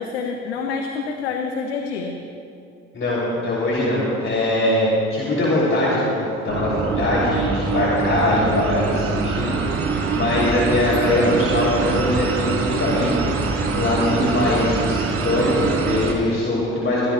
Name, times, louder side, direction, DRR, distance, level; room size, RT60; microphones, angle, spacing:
voice 1, 0.0-2.2, left 5 dB, 90° left, 3 dB, 0.9 m, -27 dB
voice 2, 2.9-13.5 13.7-17.1, left 1 dB, 40° left, -6 dB, 3.6 m, -22 dB
sound 1, 6.5-16.1, right 4 dB, 45° right, 3.9 m, -24 dB
21.5 x 14.5 x 2.5 m, 2.5 s
hypercardioid pair, 55°, 31 cm